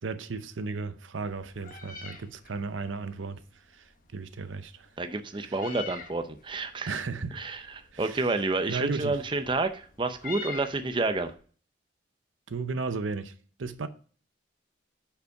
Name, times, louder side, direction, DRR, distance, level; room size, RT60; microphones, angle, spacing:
voice 1, 0.0-4.9 5.4-5.6 6.9-7.4 7.9-8.3 8.7-9.2 12.5-13.3 13.6-13.9, right 4 dB, 85° right, 0.6 m, -35 dB
Meow, 1.2-11.3, left 6 dB, 45° left, 1.2 m, -47 dB
voice 2, 5.0-6.9 7.3-7.6 8.0-11.3, right 3 dB, 25° right, 0.5 m, -29 dB
6.7 x 5.5 x 4.6 m
head